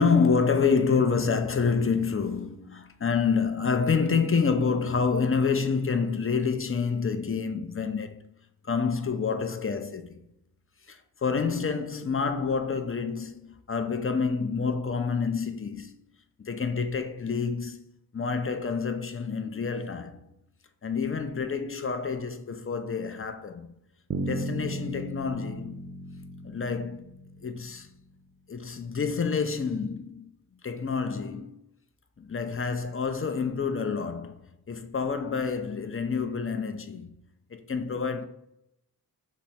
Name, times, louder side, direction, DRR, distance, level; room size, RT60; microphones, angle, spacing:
voice 1, 0.0-8.2 8.6-10.2 10.9-15.9 16.4-17.8 18.1-20.3 20.8-23.7 24.3-25.9 26.4-27.1 27.4-27.9 28.5-31.6 32.2-34.4 34.7-37.1 37.5-38.3, left 5 dB, 35° left, 0.4 m, -28 dB
Bass guitar, 24.1-28.0, right 1 dB, 35° right, 0.4 m, -36 dB
3.2 x 2.1 x 4.1 m
wide cardioid pair, 45°, 38 cm